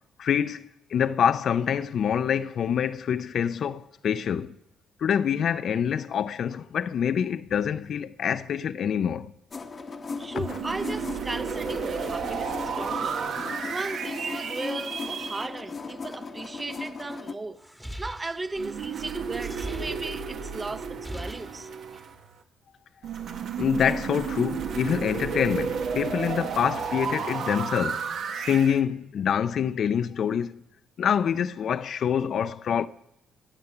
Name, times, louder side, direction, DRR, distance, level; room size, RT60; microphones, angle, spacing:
voice 1, 0.2-4.6 5.0-9.3 23.6-28.0 28.4-30.6 31.0-32.9, left 8 dB, 60° left, 0.5 m, -26 dB
sound 1, 9.5-17.3, left 4 dB, 35° left, 1.0 m, -37 dB
voice 2, 10.2-13.2 13.7-17.6 18.0-21.7, right 3 dB, 25° right, 0.8 m, -36 dB
sound 2, 10.4-15.4 18.6-22.3 23.0-28.8, right 6 dB, 70° right, 1.5 m, -32 dB
sound 3, 17.6-20.5 20.8-22.2, equal, 5° right, 1.3 m, -41 dB
18.5 x 7.1 x 7.8 m
cardioid pair, 90°, 0 cm